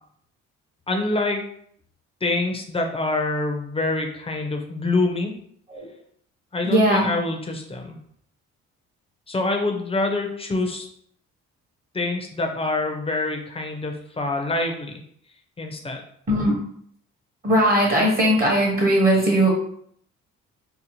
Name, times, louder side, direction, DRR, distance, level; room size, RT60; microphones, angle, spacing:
voice 1, 0.9-1.5 2.2-5.3 6.5-8.0 9.3-10.9 11.9-15.0 15.6-16.0, left 2 dB, 20° left, 3 dB, 0.5 m, -25 dB
voice 2, 6.6-7.1 16.3-16.6 17.4-19.5, right 1 dB, 30° right, -1 dB, 0.8 m, -19 dB
2.7 x 2.0 x 2.9 m, 0.65 s
cardioid pair, 90°, 30 cm